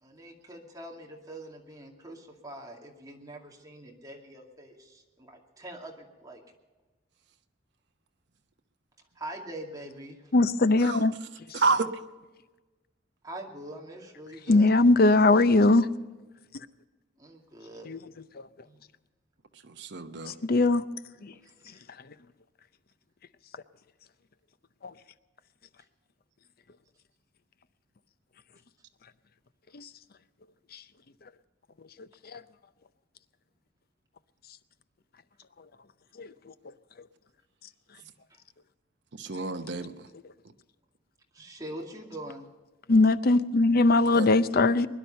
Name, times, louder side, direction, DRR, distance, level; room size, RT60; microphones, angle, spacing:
voice 1, 0.0-6.4 9.2-10.2 13.2-14.7 17.2-17.9 18.6-18.8 21.4-21.8 38.0-38.4 41.3-42.5, right 1 dB, 20° right, 0 dB, 2.3 m, -44 dB
voice 2, 10.3-11.1 14.5-15.9 17.9-18.0 20.4-20.8 21.2-21.3 29.7-29.8 32.3-32.4 36.2-36.3 42.9-44.9, left 2 dB, 55° left, 14 dB, 0.6 m, -20 dB
voice 3, 11.5-12.0 19.6-20.3 39.2-39.9 44.1-44.3, right 3 dB, 65° right, 7 dB, 0.9 m, -29 dB
21.5 x 11.0 x 5.5 m, 1.2 s
head